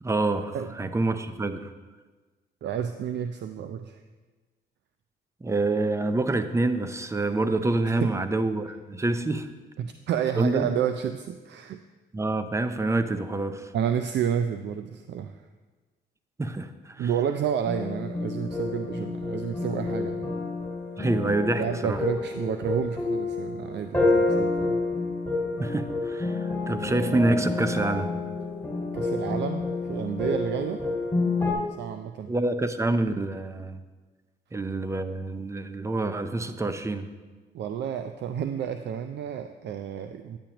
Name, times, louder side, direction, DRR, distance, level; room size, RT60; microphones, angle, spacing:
voice 1, 0.0-1.7 5.4-9.5 10.4-10.7 12.1-13.7 16.4-17.1 21.0-22.0 25.6-28.1 32.3-33.8 34.5-37.1, right 2 dB, 15° right, 10 dB, 0.5 m, -27 dB
voice 2, 0.5-0.9 2.6-4.0 8.0-8.1 9.8-11.8 13.7-15.4 17.0-20.3 21.6-24.8 28.9-29.6 29.9-30.8 31.4-32.3 37.5-40.4, right 8 dB, 60° right, 8 dB, 0.4 m, -30 dB
sound 1, 17.6-31.5, left 3 dB, 10° left, 2.1 m, -29 dB
10.0 x 8.6 x 2.9 m, 1.3 s
cardioid pair, 90°, 20 cm